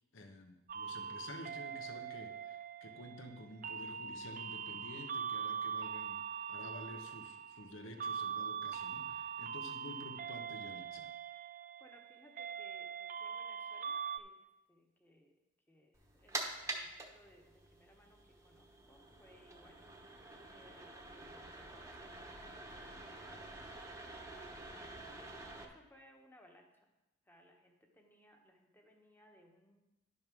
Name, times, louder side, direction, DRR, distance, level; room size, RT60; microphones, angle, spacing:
voice 1, 0.1-6.2 6.5-11.1, left 1 dB, 75° left, 5 dB, 1.0 m, -51 dB
sound 1, 0.7-14.2, right 7 dB, 40° right, 0.4 m, -42 dB
voice 2, 11.8-15.3 15.7-23.6 24.1-24.9 25.6-26.9 27.2-29.8, equal, 10° left, 1 dB, 1.2 m, -64 dB
sound 2, 15.9-25.6, right 2 dB, 15° right, 1.1 m, -47 dB
11.0 x 5.3 x 6.1 m, 0.96 s
head